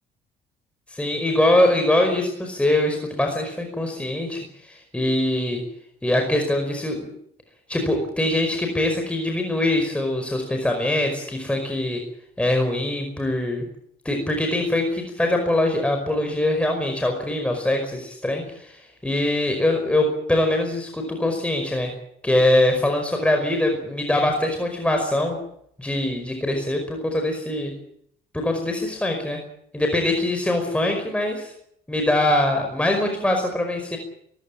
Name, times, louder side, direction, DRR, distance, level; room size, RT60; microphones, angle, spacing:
voice 1, 0.9-5.6 6.0-7.1 7.7-12.0 12.4-13.6 14.0-21.9 22.2-25.4 25.8-27.7 28.3-29.4 29.7-31.5 31.9-34.0, left 1 dB, 5° left, 3 dB, 5.1 m, -23 dB
22.5 x 16.0 x 9.1 m, 0.72 s
cardioid pair, 110°, 17 cm